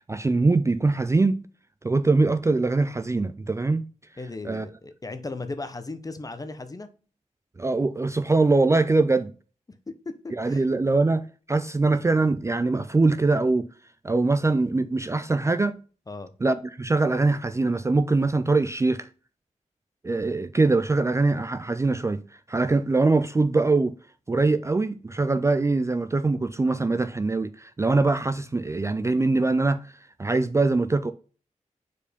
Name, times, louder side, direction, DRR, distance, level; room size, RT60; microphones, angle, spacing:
voice 1, 0.1-1.4 1.8-3.8 4.4-4.7 7.6-9.3 10.4-13.7 14.0-15.8 16.4-19.1 20.0-22.2 22.5-23.9 24.3-29.9 30.2-31.1, right 3 dB, 20° right, 0.4 m, -23 dB
voice 2, 4.2-6.9 10.0-10.6 16.1-16.3, left 3 dB, 30° left, 0.8 m, -36 dB
4.9 x 4.5 x 5.1 m
wide cardioid pair, 95°, 13 cm